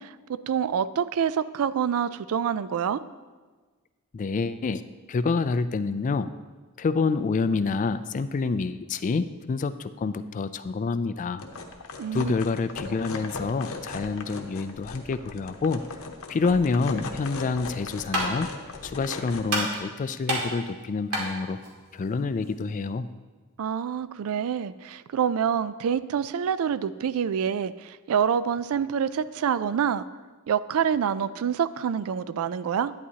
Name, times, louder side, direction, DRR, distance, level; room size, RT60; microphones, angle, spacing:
voice 1, 0.0-3.0 12.0-12.3 23.6-30.0 30.5-32.9, right 8 dB, 65° right, 15 dB, 0.3 m, -27 dB
voice 2, 4.1-4.8 5.1-6.3 6.8-11.4 12.1-15.8 16.3-18.5 18.8-21.6 21.9-23.1, left 4 dB, 35° left, 13 dB, 0.3 m, -27 dB
sound 1, 11.4-19.4, left 3 dB, 65° left, 0.9 m, -38 dB
sound 2, 17.6-22.9, right 1 dB, 90° right, 2.2 m, -32 dB
11.0 x 9.4 x 2.8 m, 1.4 s
head